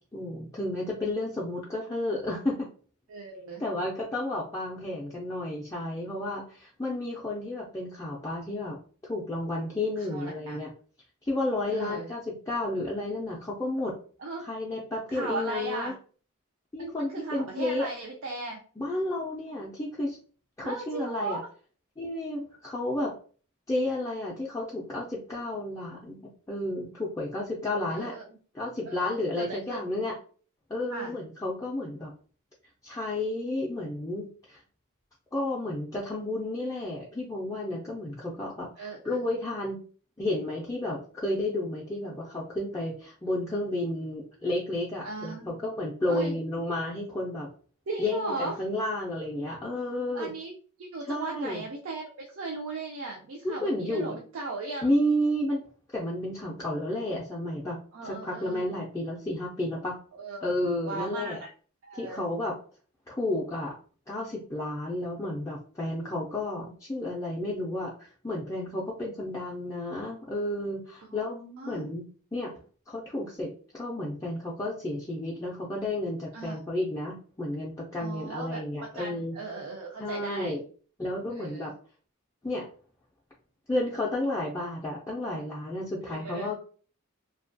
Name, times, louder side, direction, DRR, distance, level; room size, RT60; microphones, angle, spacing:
voice 1, 0.1-2.7 3.6-8.8 9.0-10.7 11.2-13.9 14.4-15.9 16.7-17.9 18.8-20.2 20.6-21.4 22.0-23.1 23.7-28.1 28.5-30.1 30.7-32.1 32.8-34.6 35.3-39.8 40.2-47.5 48.0-50.3 51.1-51.6 53.4-54.2 54.8-55.6 55.9-57.8 58.0-60.0 60.4-61.4 61.9-62.5 63.1-63.8 64.1-71.4 71.6-72.1 72.3-72.5 72.9-79.3 80.0-80.6 81.0-81.7 82.4-82.7 83.7-86.6, left 1 dB, 15° left, -4 dB, 0.4 m, -32 dB
voice 2, 3.1-3.6 10.0-10.6 11.7-12.1 14.2-14.4 15.1-16.0 16.8-18.6 20.6-21.5 27.9-28.2 28.9-29.9 30.9-31.1 38.8-39.2 45.0-45.6 46.1-46.4 47.9-48.6 50.1-54.9 57.9-58.6 60.1-60.5 60.8-61.5 61.8-62.2 71.0-71.9 76.3-76.6 78.0-78.6 78.9-80.6 81.3-81.7 86.1-86.5, right 3 dB, 60° right, 0 dB, 0.4 m, -37 dB
2.7 x 2.2 x 2.6 m, 0.42 s
head